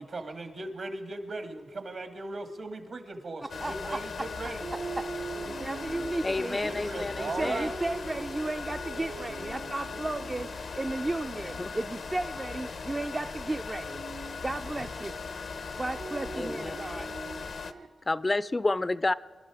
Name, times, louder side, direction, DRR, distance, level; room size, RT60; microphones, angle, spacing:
voice 1, 0.0-4.7 6.0-6.1 6.6-7.8, right 2 dB, 65° right, 1.9 m, -38 dB
sound 1, 3.5-17.7, left 5 dB, 70° left, 0.7 m, -39 dB
voice 2, 3.6-4.0 5.4-6.6 7.2-14.0 14.4-15.1 15.7-17.1, right 2 dB, 30° right, 0.5 m, -34 dB
sound 2, 4.1-17.9, right 4 dB, 85° right, 1.4 m, -43 dB
voice 3, 6.2-7.7 11.6-11.7 16.3-16.8 18.0-19.1, left 2 dB, 30° left, 0.4 m, -30 dB
24.0 x 12.0 x 4.9 m
cardioid pair, 50°, 0 cm